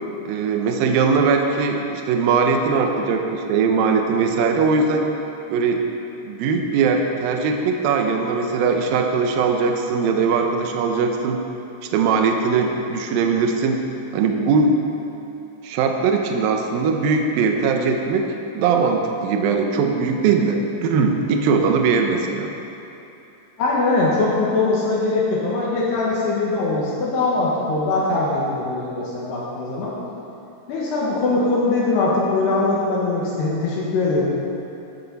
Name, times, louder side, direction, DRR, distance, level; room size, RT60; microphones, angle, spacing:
voice 1, 0.3-5.1 5.5-5.9 6.2-11.4 11.9-13.8 14.1-14.8 15.6-18.3 18.5-22.5, right 5 dB, 80° right, 3 dB, 2.1 m, -20 dB
voice 2, 23.6-29.9 30.7-34.3, left 3 dB, 70° left, -5 dB, 3.4 m, -21 dB
13.0 x 12.5 x 4.1 m, 2.8 s
omnidirectional pair, 5.4 m